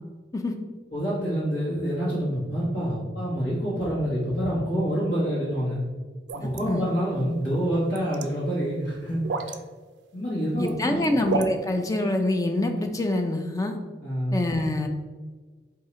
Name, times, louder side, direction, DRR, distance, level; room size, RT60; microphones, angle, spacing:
voice 1, 0.9-5.8 6.3-9.5 10.1-11.0 14.0-14.4, equal, 70° left, -9 dB, 1.5 m, -27 dB
sound 1, 6.3-6.6 7.8-8.2 9.2-9.6 10.4-10.7 11.0-11.5, right 4 dB, 75° right, 0.3 m, -29 dB
voice 2, 10.6-13.8 14.3-14.9, left 1 dB, 20° left, 5 dB, 0.4 m, -25 dB
3.8 x 2.7 x 4.3 m, 1.4 s
head